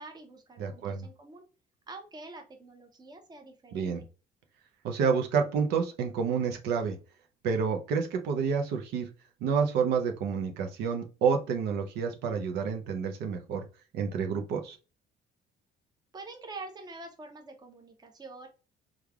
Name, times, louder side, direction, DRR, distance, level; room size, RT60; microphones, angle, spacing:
voice 1, 0.0-1.4 1.9-4.1 16.1-18.5, right 3 dB, 25° right, 4 dB, 0.9 m, -46 dB
voice 2, 0.6-1.1 3.7-4.0 4.8-7.0 7.4-9.1 9.4-13.6 13.9-14.8, right 6 dB, 80° right, 5 dB, 0.6 m, -29 dB
3.2 x 2.4 x 3.4 m, 0.33 s
cardioid pair, 110°, 17 cm